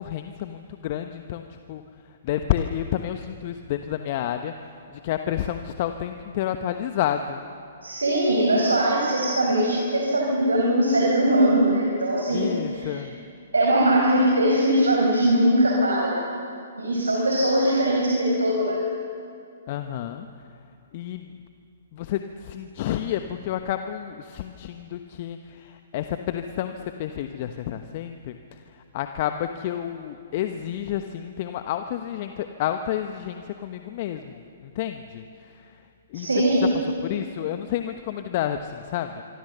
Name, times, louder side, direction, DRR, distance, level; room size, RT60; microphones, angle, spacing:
voice 1, 0.0-7.4 12.3-13.1 19.7-20.3 20.9-21.4 21.9-35.8 36.1-36.3 36.6-39.2, left 11 dB, 45° left, 7 dB, 1.1 m, -30 dB
voice 2, 7.8-13.0 13.5-16.1 16.8-18.8 36.1-36.6, right 1 dB, 80° right, -2 dB, 5.4 m, -21 dB
25.0 x 25.0 x 6.9 m, 2.5 s
figure-of-eight pair, 125°, 0 cm